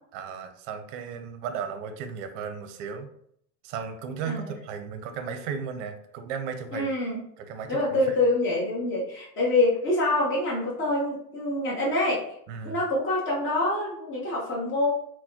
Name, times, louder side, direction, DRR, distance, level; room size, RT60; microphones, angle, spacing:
voice 1, 0.1-3.1 3.6-6.9 7.4-8.0 12.5-12.8, right 6 dB, 50° right, 7 dB, 0.6 m, -35 dB
voice 2, 6.7-7.2 7.7-12.2 12.6-14.9, left 2 dB, 25° left, -5 dB, 1.1 m, -25 dB
3.8 x 2.2 x 2.8 m, 0.70 s
hypercardioid pair, 95°, 47 cm